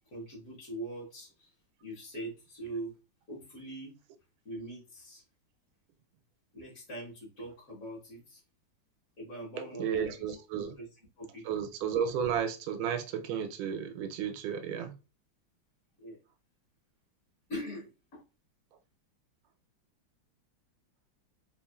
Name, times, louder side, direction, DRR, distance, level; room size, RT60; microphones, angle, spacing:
voice 1, 0.1-1.5 1.8-2.9 3.3-4.0 4.4-5.2 6.5-8.4 9.2-10.1 10.5-10.9 11.2-11.5 16.0-16.2 17.5-18.2, right 1 dB, 50° left, 1.3 m, -42 dB
voice 2, 9.8-10.7 11.4-14.9, right 8 dB, 90° right, 1.4 m, -33 dB
3.3 x 2.4 x 2.2 m
omnidirectional pair, 2.2 m